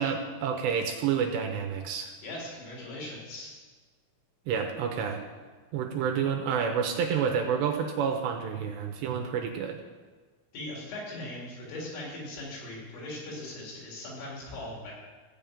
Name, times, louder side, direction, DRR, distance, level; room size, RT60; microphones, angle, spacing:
voice 1, 0.0-2.1 4.5-5.2 5.7-9.8, right 7 dB, 75° right, 4 dB, 2.7 m, -29 dB
voice 2, 2.2-3.6 10.5-14.9, left 1 dB, 80° left, -4 dB, 6.2 m, -39 dB
15.0 x 5.4 x 8.8 m, 1.4 s
omnidirectional pair, 5.6 m